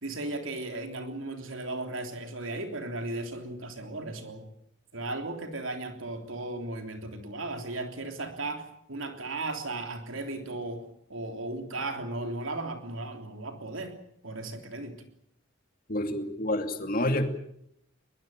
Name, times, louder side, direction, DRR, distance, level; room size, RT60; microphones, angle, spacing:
voice 1, 0.0-4.5 4.9-14.0 14.2-15.0, right 2 dB, 75° right, 5 dB, 3.4 m, -36 dB
voice 2, 15.9-17.2, left 1 dB, 45° left, 6 dB, 2.6 m, -28 dB
22.0 x 21.5 x 9.0 m, 0.74 s
head